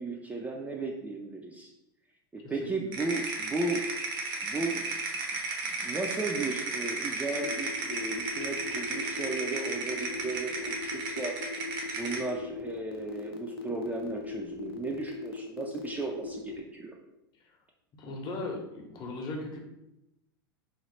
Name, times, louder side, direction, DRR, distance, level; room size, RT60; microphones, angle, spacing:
voice 1, 0.0-1.7 2.3-3.8 4.4-4.8 5.6-11.3 12.0-17.0, right 3 dB, 10° right, 0 dB, 0.3 m, -35 dB
sound 1, 2.9-12.3, right 3 dB, 65° right, 0.7 m, -34 dB
sound 2, 7.3-16.6, left 4 dB, 90° left, 0.4 m, -39 dB
voice 2, 18.0-19.6, left 2 dB, 35° left, 1 dB, 0.7 m, -37 dB
3.0 x 2.0 x 3.0 m, 0.89 s
hypercardioid pair, 100°, 12 cm